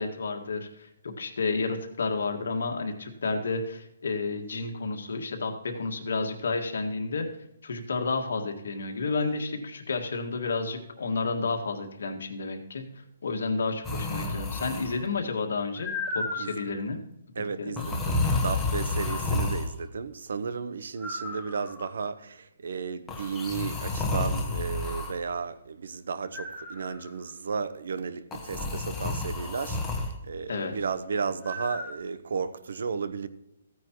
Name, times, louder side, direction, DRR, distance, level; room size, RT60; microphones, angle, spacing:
voice 1, 0.0-7.3 7.6-12.8 13.2-17.0 17.6-17.9 30.5-30.7, left 3 dB, 75° left, 1.8 m, -31 dB
sound 1, 13.8-15.1 15.8-16.7 17.8-19.7 21.0-21.9 23.1-25.1 26.3-27.1 28.3-30.1 31.4-31.9, left 2 dB, 5° left, 1.2 m, -31 dB
voice 2, 17.3-33.3, right 5 dB, 65° right, 0.8 m, -34 dB
15.0 x 9.5 x 3.0 m
hypercardioid pair, 175°, 0 cm